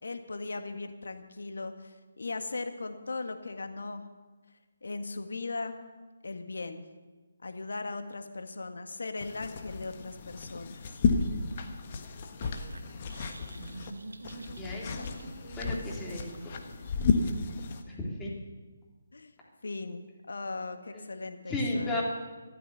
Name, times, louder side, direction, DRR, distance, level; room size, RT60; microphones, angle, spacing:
voice 1, 0.0-4.1 4.8-5.8 6.2-6.8 7.4-11.0 14.8-15.1 19.1-19.3 19.6-22.0, left 3 dB, 60° left, 7 dB, 1.7 m, -38 dB
sound 1, 9.2-13.9 14.2-17.8, left 4 dB, 35° left, 1.4 m, -33 dB
sound 2, 12.4-17.4, right 2 dB, 65° right, 1.5 m, -46 dB
voice 2, 14.6-15.1 15.5-16.5 17.9-18.3 20.9-21.0 21.5-22.0, left 2 dB, 10° left, -5 dB, 3.6 m, -34 dB
14.5 x 13.5 x 7.1 m, 1.3 s
figure-of-eight pair, 145°, 0 cm